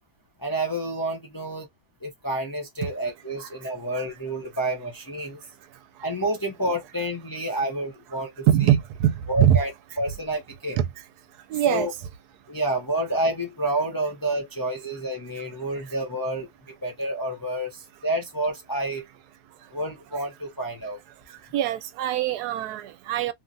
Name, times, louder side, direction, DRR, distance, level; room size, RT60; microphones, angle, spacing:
voice 1, 0.4-1.7 2.0-5.4 6.0-8.7 9.3-9.7 10.0-10.8 11.7-11.9 12.5-16.5 16.8-19.0 19.7-21.0, right 1 dB, 30° left, 0.4 m, -29 dB
voice 2, 8.5-9.6 11.5-11.9 21.5-23.3, right 11 dB, 90° right, 1.1 m, -22 dB
3.0 x 2.4 x 2.5 m
omnidirectional pair, 1.6 m